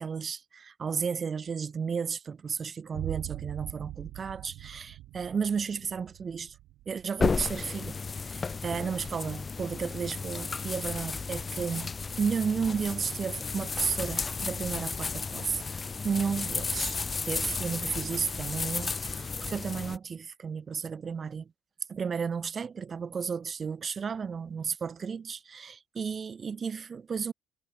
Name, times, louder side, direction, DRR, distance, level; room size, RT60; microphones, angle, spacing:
voice 1, 0.0-6.6 6.9-8.0 8.3-15.6 16.0-17.0 17.2-21.5 21.9-27.3, right 6 dB, 35° right, 0.6 m, -33 dB
sound 1, 2.9-10.3, right 16 dB, 80° right, 0.6 m, -43 dB
sound 2, 7.2-20.0, left 4 dB, 30° left, 0.5 m, -33 dB
cardioid pair, 100°, 0 cm